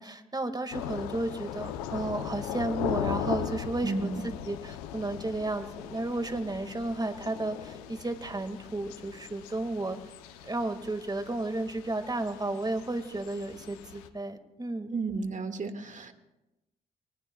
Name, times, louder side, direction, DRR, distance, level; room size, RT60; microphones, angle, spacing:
voice 1, 0.0-10.0 10.4-14.9, right 2 dB, 20° right, 8 dB, 2.0 m, -33 dB
Thunder / Rain, 0.7-14.1, left 10 dB, 90° left, 0.7 m, -39 dB
voice 2, 3.8-4.2 14.9-16.1, right 3 dB, 40° right, 7 dB, 1.9 m, -32 dB
24.0 x 19.5 x 2.3 m, 0.96 s
hypercardioid pair, 40°, 18 cm